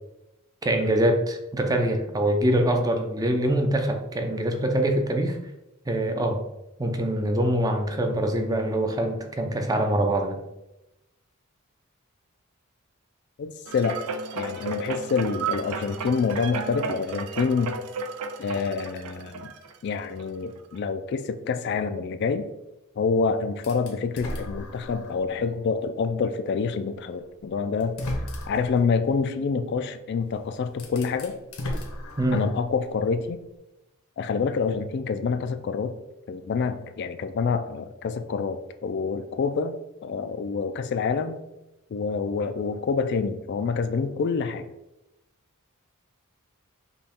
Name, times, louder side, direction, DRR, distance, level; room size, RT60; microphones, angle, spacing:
voice 1, 0.6-5.4 5.9-6.4 6.8-10.4 32.2-32.5, right 1 dB, 15° right, 4 dB, 0.4 m, -24 dB
voice 2, 13.4-14.0 14.3-17.8 18.4-19.5 19.8-22.5 23.0-28.0 28.5-31.4 32.3-33.4 34.2-35.9 36.3-39.8 40.0-41.4 41.9-44.6, left 5 dB, 50° left, 9 dB, 0.3 m, -27 dB
sound 1, 13.7-20.2 20.7-20.8, right 4 dB, 85° right, 0.5 m, -33 dB
sound 2, 23.6-25.3 25.8-25.9 27.1-27.2 27.8-28.8 30.2-30.3 30.7-32.7, left 1 dB, 75° left, 0.9 m, -35 dB
5.3 x 2.3 x 4.2 m, 0.93 s
head